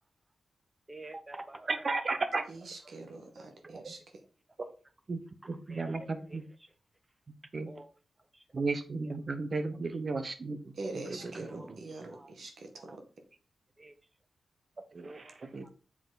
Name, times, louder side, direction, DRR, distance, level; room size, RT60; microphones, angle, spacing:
voice 1, 0.9-1.7 3.4-3.8 5.7-5.8 7.7-7.9 8.3-8.4 11.5-11.8 12.1-12.3 12.9-13.0 13.8-13.9 15.0-15.4 15.6-15.7, right 2 dB, 25° right, 10 dB, 0.8 m, -48 dB
voice 2, 1.7-2.4 3.6-3.9 5.1-6.4 7.5-7.7 8.5-12.1 14.9-15.7, right 3 dB, 50° right, 9 dB, 1.1 m, -35 dB
voice 3, 2.5-4.0 10.8-13.0, right 2 dB, 70° right, 5 dB, 1.6 m, -43 dB
7.3 x 3.8 x 4.0 m, 0.36 s
cardioid pair, 55°, 0 cm